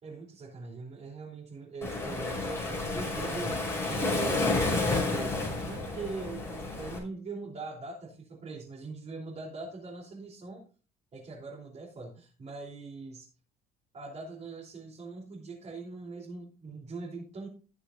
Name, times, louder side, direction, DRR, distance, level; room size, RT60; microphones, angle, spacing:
voice 1, 0.0-4.5 4.9-10.6 11.1-13.3 13.9-17.5, right 4 dB, 40° right, -3 dB, 3.5 m, -42 dB
Waves surf, 1.8-7.0, left 2 dB, 15° left, 5.4 m, -30 dB
18.5 x 6.6 x 2.6 m, 0.37 s
cardioid pair, 110°, 17 cm